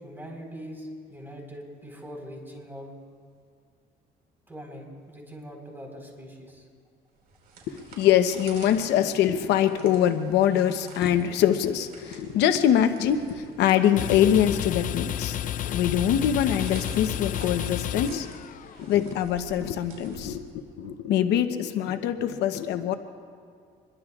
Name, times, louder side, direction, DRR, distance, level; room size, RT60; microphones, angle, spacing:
voice 1, 0.0-2.9 4.5-6.7, equal, 10° right, 0 dB, 4.2 m, -42 dB
sound 1, 7.2-20.9, right 4 dB, 65° right, 4.5 m, -50 dB
voice 2, 7.7-18.3 18.8-23.0, left 10 dB, 80° left, 8 dB, 0.9 m, -24 dB
sound 2, 13.7-18.9, left 11 dB, 50° left, 0.5 m, -31 dB
26.0 x 22.0 x 2.4 m, 2.2 s
cardioid pair, 110°, 17 cm